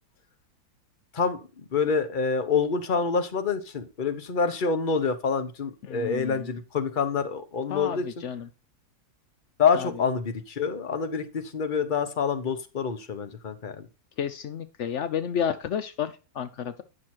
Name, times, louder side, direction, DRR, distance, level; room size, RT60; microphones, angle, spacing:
voice 1, 1.1-8.0 9.6-13.9, left 5 dB, 35° left, 10 dB, 0.8 m, -27 dB
voice 2, 5.9-6.5 7.7-8.5 9.8-9.9 14.2-16.8, left 8 dB, 80° left, 12 dB, 0.6 m, -31 dB
10.0 x 6.3 x 4.4 m, 0.31 s
omnidirectional pair, 2.1 m